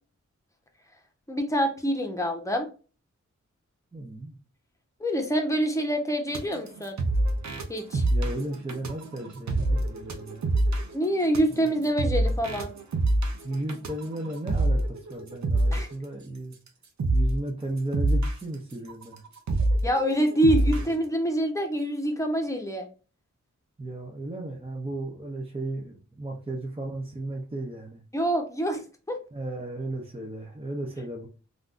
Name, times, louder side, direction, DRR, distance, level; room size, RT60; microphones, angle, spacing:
voice 1, 1.3-2.7 5.0-7.0 7.7-8.0 10.9-12.7 15.7-15.9 19.8-22.9 28.1-28.8 29.1-29.2, equal, 10° left, 3 dB, 0.9 m, -26 dB
voice 2, 3.9-4.4 8.1-10.5 11.5-11.7 13.4-16.6 17.1-19.2 20.7-20.8 23.8-28.0 29.3-31.3, right 2 dB, 20° right, 0 dB, 0.6 m, -35 dB
sound 1, 6.3-15.9 16.5-16.7 17.0-17.4 17.8-20.9, right 1 dB, 65° right, 0.7 m, -26 dB
3.3 x 2.5 x 2.4 m, 0.36 s
cardioid pair, 55°, 31 cm